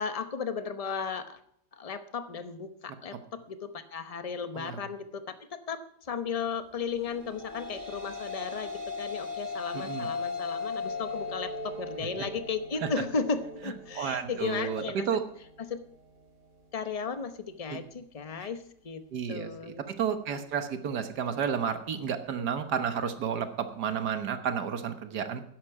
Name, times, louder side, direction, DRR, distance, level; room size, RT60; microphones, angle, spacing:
voice 1, 0.0-1.4 1.7-8.7 9.0-15.1 15.6-15.8 16.7-19.0 19.3-19.8, left 5 dB, 30° left, 10 dB, 0.6 m, -35 dB
sound 1, 7.1-15.6, left 4 dB, 30° right, 1.5 m, -38 dB
voice 2, 9.7-10.1 12.8-12.9 13.9-15.2 17.7-17.8 18.4-18.5 19.1-19.5 19.9-25.4, right 7 dB, 65° right, 8 dB, 1.7 m, -31 dB
12.5 x 11.0 x 4.7 m, 0.70 s
omnidirectional pair, 1.9 m